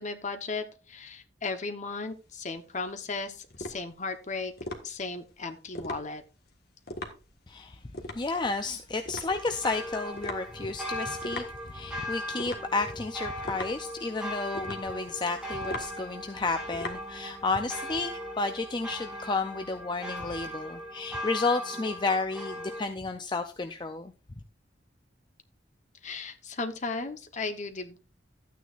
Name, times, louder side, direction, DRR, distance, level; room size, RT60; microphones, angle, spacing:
voice 1, 0.0-4.5 4.8-6.2 26.0-28.0, left 3 dB, 40° left, 7 dB, 1.1 m, -36 dB
sound 1, 2.1-17.7, left 1 dB, 55° left, 1.7 m, -42 dB
voice 2, 7.5-7.8 8.1-11.4 11.7-24.1, left 3 dB, 25° left, 7 dB, 0.5 m, -32 dB
sound 2, 9.3-22.8, equal, 5° right, 2.9 m, -39 dB
13.0 x 9.3 x 2.5 m, 0.34 s
head